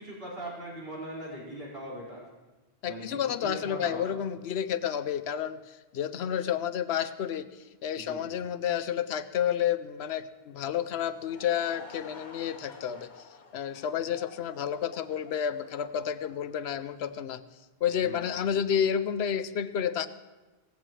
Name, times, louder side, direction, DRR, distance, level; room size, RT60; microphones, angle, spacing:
voice 1, 0.0-2.2 2.8-4.2 8.0-8.4 18.0-18.3, right 1 dB, 70° right, -6 dB, 5.4 m, -40 dB
voice 2, 2.8-13.1 13.5-17.4 17.8-20.1, left 9 dB, 85° left, 13 dB, 0.9 m, -30 dB
Laughter / Crowd, 11.1-17.2, left 4 dB, 50° left, 1.1 m, -50 dB
17.5 x 15.5 x 3.2 m, 1.2 s
omnidirectional pair, 1.0 m